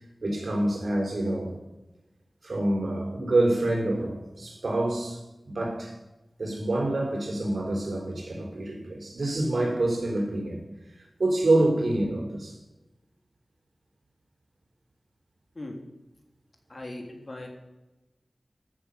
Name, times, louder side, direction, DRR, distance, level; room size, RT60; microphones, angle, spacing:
voice 1, 0.2-1.6 2.4-5.9 6.4-10.6 11.0-12.6, right 2 dB, 75° right, 4.1 m, -27 dB
voice 2, 16.7-17.5, left 1 dB, 45° left, 3.2 m, -39 dB
13.5 x 6.8 x 7.1 m
wide cardioid pair, 60°, 0 cm